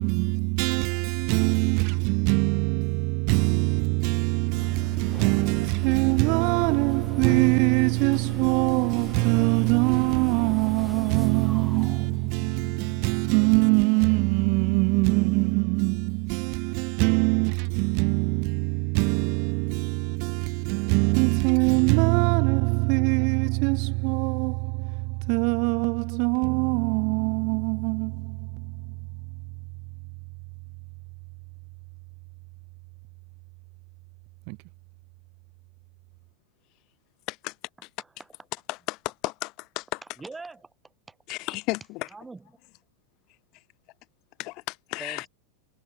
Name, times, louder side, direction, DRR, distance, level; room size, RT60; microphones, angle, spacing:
voice 1, 0.0-28.9 34.5-34.6, right 36 dB, 55° right, 0.6 m, -23 dB
sound 1, 4.5-15.5, left 1 dB, 5° left, 2.3 m, -42 dB
voice 2, 38.7-39.5 39.8-40.0 41.3-42.1 44.4-45.3, left 23 dB, 50° left, 1.0 m, -33 dB
voice 3, 40.2-41.2 42.1-42.4 45.0-45.3, right 3 dB, 10° right, 6.8 m, -43 dB
hypercardioid pair, 105°, 0 cm